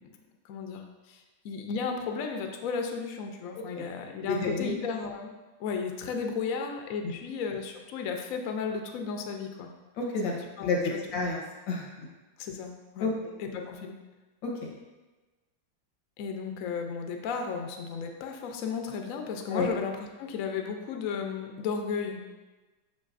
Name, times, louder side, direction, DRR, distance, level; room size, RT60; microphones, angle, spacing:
voice 1, 0.4-5.3 5.6-9.7 10.2-11.0 12.4-13.1 13.4-14.0 16.2-22.2, left 5 dB, 65° left, 3 dB, 0.9 m, -34 dB
voice 2, 4.3-4.7 7.0-7.1 10.0-10.3 10.6-11.4 11.7-12.1 13.0-13.1 14.4-14.7 19.5-19.7, left 3 dB, 90° left, -2 dB, 1.8 m, -30 dB
6.6 x 6.3 x 2.5 m, 1.2 s
omnidirectional pair, 2.0 m